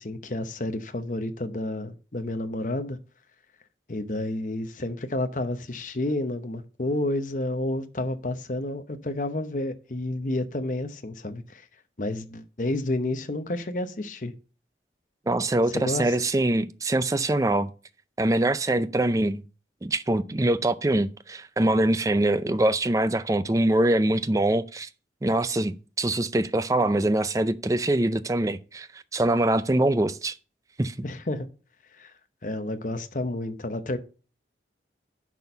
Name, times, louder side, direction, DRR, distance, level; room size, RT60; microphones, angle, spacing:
voice 1, 0.0-3.0 3.9-11.6 12.0-14.3 15.7-16.1 31.0-31.5 32.0-32.1 32.4-34.0, left 1 dB, 45° left, 0.8 m, -30 dB
voice 2, 15.3-17.7 18.2-19.4 19.8-24.9 25.2-30.4 30.8-31.0, right 1 dB, 20° right, 0.4 m, -24 dB
11.0 x 4.2 x 5.6 m
head